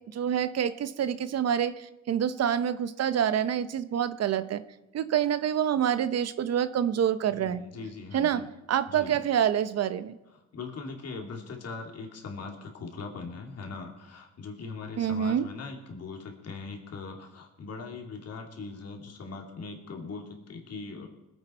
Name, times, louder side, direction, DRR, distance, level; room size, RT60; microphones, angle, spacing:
voice 1, 0.1-4.6 4.9-7.6 8.1-8.4 8.7-10.2 15.0-15.4, right 9 dB, 55° right, 14 dB, 0.7 m, -27 dB
voice 2, 7.3-8.5 8.9-9.2 10.3-21.1, left 4 dB, 55° left, 2 dB, 2.7 m, -40 dB
20.5 x 8.9 x 4.5 m, 0.96 s
cardioid pair, 90°, 30 cm